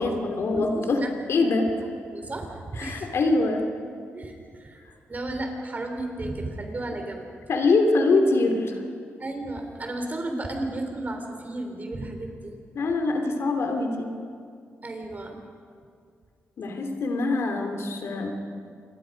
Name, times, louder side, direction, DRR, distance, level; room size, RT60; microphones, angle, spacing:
voice 1, 0.0-1.0 1.3-1.7 2.8-3.7 7.5-8.8 12.7-14.1 16.6-18.3, left 3 dB, 70° left, 4 dB, 2.9 m, -24 dB
voice 2, 0.5-1.1 2.0-3.1 4.1-4.8 5.1-7.3 9.2-12.5 14.8-15.4, right 2 dB, 35° right, 4 dB, 3.9 m, -33 dB
27.5 x 21.5 x 5.3 m, 2.3 s
cardioid pair, 75°, 5 cm